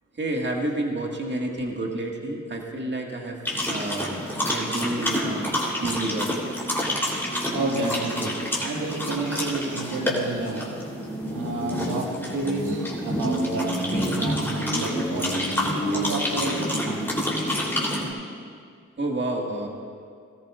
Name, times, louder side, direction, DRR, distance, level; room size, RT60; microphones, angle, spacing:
voice 1, 0.2-3.4 3.7-5.5 5.8-6.3 19.0-19.7, right 1 dB, 35° right, 0 dB, 2.0 m, -29 dB
sound 1, 3.5-18.1, equal, 5° left, 3.6 m, -28 dB
voice 2, 7.5-10.8 11.3-17.2, right 2 dB, 75° right, 0 dB, 1.9 m, -31 dB
18.5 x 13.5 x 2.6 m, 2.2 s
cardioid pair, 60°, 31 cm